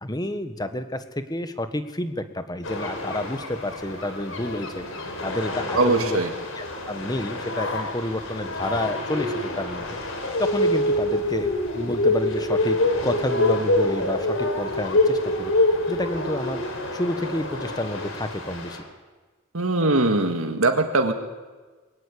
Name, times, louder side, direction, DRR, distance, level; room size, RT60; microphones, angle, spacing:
voice 1, 0.0-6.2 6.5-9.9 10.4-12.8 13.0-16.6 16.9-18.8, left 1 dB, 20° left, 10 dB, 1.4 m, -30 dB
sound 1, 2.6-18.8, left 1 dB, 70° left, 4.1 m, -26 dB
voice 2, 5.7-6.3 19.5-21.1, right 2 dB, 85° right, 5 dB, 1.9 m, -21 dB
23.0 x 18.0 x 8.6 m, 1.3 s
head